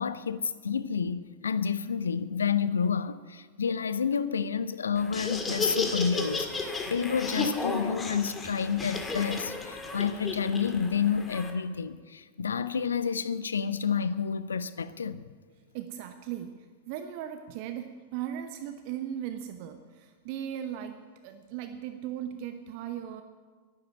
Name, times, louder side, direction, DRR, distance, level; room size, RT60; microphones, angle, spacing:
voice 1, 0.0-15.2, left 6 dB, 70° left, 0.6 m, -29 dB
Laughter, 5.0-11.5, left 3 dB, 15° left, 1.9 m, -34 dB
voice 2, 15.7-23.2, right 10 dB, 45° right, 0.8 m, -38 dB
11.5 x 11.0 x 8.9 m
figure-of-eight pair, 90°, 0 cm